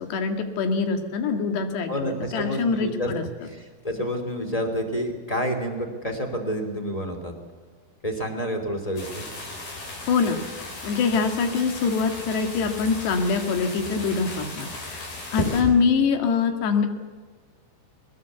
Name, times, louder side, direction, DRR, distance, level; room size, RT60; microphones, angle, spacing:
voice 1, 0.0-3.2 10.1-10.4 10.8-15.0 15.3-16.9, left 5 dB, 75° left, 6 dB, 4.0 m, -24 dB
voice 2, 1.9-3.1 3.4-7.3 8.0-9.2 15.6-15.7, equal, 10° left, 5 dB, 2.2 m, -29 dB
sound 1, 9.0-15.6, left 2 dB, 55° left, 7.1 m, -35 dB
21.5 x 20.0 x 8.2 m, 1.5 s
omnidirectional pair, 5.0 m